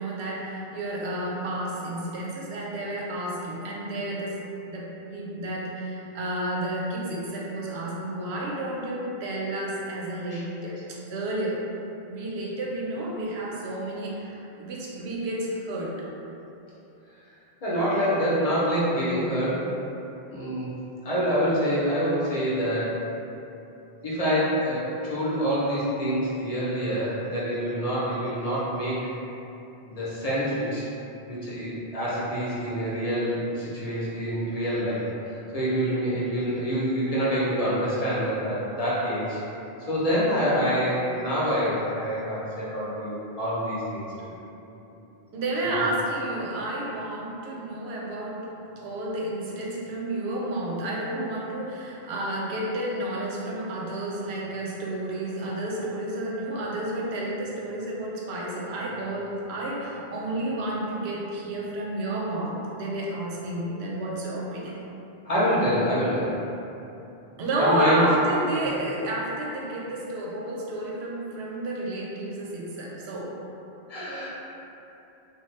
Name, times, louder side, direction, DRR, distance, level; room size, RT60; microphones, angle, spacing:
voice 1, 0.0-4.4 4.7-11.6 12.1-16.0 36.1-36.2 45.3-48.5 48.8-64.8 67.4-73.4, right 1 dB, 85° right, -4 dB, 0.8 m, -31 dB
voice 2, 17.6-19.7 20.3-20.7 21.0-23.0 24.0-29.1 29.9-30.9 31.3-39.4 39.9-44.3 45.6-45.8 65.2-66.4 67.6-68.0 73.9-74.3, equal, 40° left, -8 dB, 0.7 m, -26 dB
2.8 x 2.2 x 3.2 m, 2.9 s
omnidirectional pair, 1.1 m